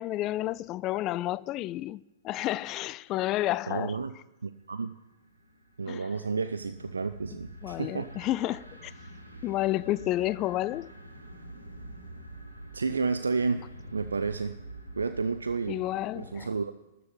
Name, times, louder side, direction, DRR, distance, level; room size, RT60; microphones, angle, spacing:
voice 1, 0.0-4.0 5.9-6.1 7.6-8.9 9.4-10.9 15.7-16.5, left 15 dB, 30° left, 0.3 m, -31 dB
voice 2, 3.7-4.1 4.4-4.9 5.8-8.1 12.7-14.6 15.0-15.8 16.1-16.7, right 4 dB, 70° right, 0.5 m, -31 dB
sound 1, 4.7-16.5, right 1 dB, 85° right, 2.2 m, -46 dB
13.0 x 6.9 x 8.8 m
figure-of-eight pair, 110°, 0 cm